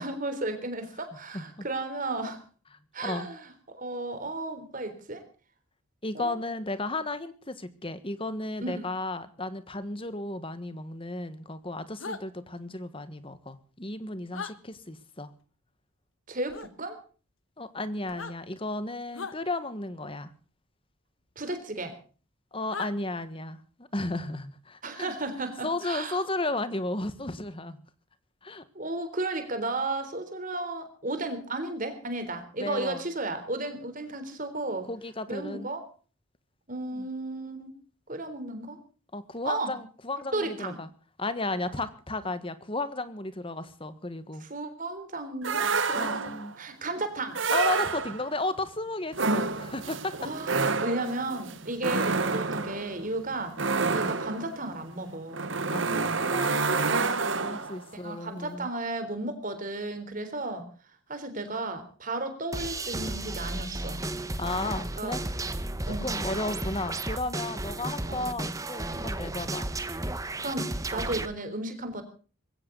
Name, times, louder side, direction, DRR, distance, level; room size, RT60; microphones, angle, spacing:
voice 1, 0.0-2.4 2.9-5.2 6.1-6.4 8.6-8.8 16.3-17.0 21.4-22.0 24.8-26.2 28.8-34.9 35.3-35.8 36.7-37.7 38.1-38.8 39.4-39.7 40.3-40.8 44.5-46.3 46.6-47.4 50.2-53.6 53.9-55.5 58.0-60.7 61.1-64.0 65.0-65.1 65.9-66.5 68.1-68.5 70.4-72.0, right 2 dB, 40° right, 8 dB, 3.7 m, -34 dB
voice 2, 1.3-1.6 3.0-3.3 6.0-15.3 17.6-20.3 22.5-23.6 23.9-25.1 25.6-27.8 28.4-28.6 32.6-33.0 34.9-35.7 36.9-37.1 39.1-40.9 41.2-44.4 46.0-46.6 47.5-50.1 54.0-54.2 55.7-58.7 64.4-65.2 66.0-69.7, left 2 dB, 25° left, 13 dB, 1.4 m, -34 dB
sound 1, 12.0-12.2 14.3-14.5 16.5-16.7 18.0-18.4 19.1-19.4 21.4-21.6 22.7-22.9, left 5 dB, 65° left, 1.5 m, -37 dB
sound 2, 45.4-46.5 47.3-48.4 49.1-57.8, right 4 dB, 60° right, 1.4 m, -28 dB
sound 3, 62.5-71.3, right 2 dB, 15° right, 1.1 m, -33 dB
21.0 x 16.5 x 4.0 m, 0.39 s
head